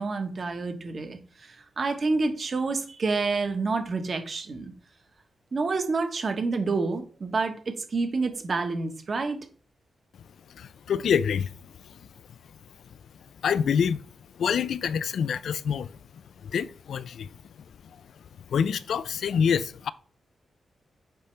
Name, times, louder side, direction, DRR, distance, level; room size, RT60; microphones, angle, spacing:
voice 1, 0.0-4.7 5.5-9.4, right 3 dB, 40° right, 1.2 m, -28 dB
voice 2, 10.6-11.5 13.4-14.0 14.4-15.9 16.4-17.3 18.5-19.9, left 7 dB, 75° left, 0.4 m, -26 dB
8.1 x 5.1 x 3.3 m
wide cardioid pair, 165°, 0 cm